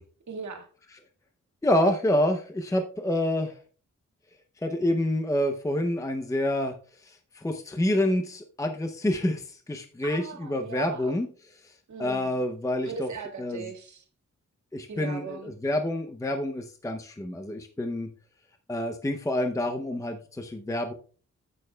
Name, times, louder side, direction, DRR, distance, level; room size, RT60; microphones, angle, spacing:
voice 1, 0.3-0.7 10.0-11.2 11.9-12.4 12.8-14.0 14.9-15.5, right 5 dB, 75° right, 3 dB, 1.9 m, -38 dB
voice 2, 1.6-3.6 4.6-6.7 7.0-11.7 12.0-13.1 13.4-13.7 14.7-18.1 18.7-20.9, left 1 dB, 10° left, 5 dB, 0.6 m, -28 dB
10.5 x 8.8 x 2.2 m, 0.41 s
wide cardioid pair, 155°, 29 cm